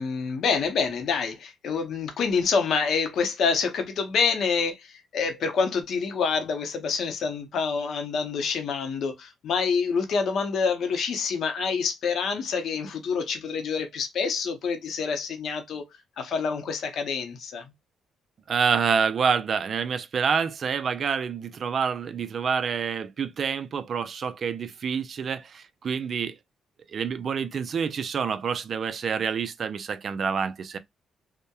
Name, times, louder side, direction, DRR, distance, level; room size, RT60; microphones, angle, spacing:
voice 1, 0.0-15.9 16.2-17.7, left 5 dB, 65° left, 0.6 m, -27 dB
voice 2, 18.5-26.4 26.9-30.8, right 6 dB, 50° right, 0.4 m, -27 dB
2.8 x 2.1 x 2.2 m
cardioid pair, 90°, 0 cm